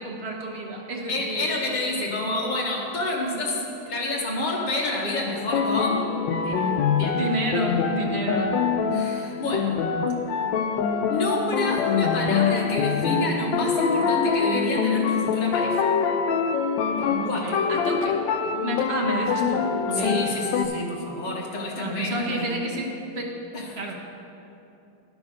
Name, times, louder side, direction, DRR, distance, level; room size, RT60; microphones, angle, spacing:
voice 1, 0.0-1.6 7.1-8.5 17.2-18.1 18.6-19.6 19.9-20.3 21.8-22.9 23.2-23.4 23.8-23.9, right 1 dB, 45° right, -1 dB, 1.0 m, -30 dB
voice 2, 1.1-6.0 6.4-7.2 8.9-9.8 11.1-15.8 17.0-17.6 19.9-22.7 23.5-23.9, left 2 dB, 35° left, -3 dB, 0.9 m, -28 dB
sound 1, 5.3-20.7, left 6 dB, 90° left, 1.3 m, -25 dB
10.5 x 6.1 x 5.0 m, 2.9 s
omnidirectional pair, 1.9 m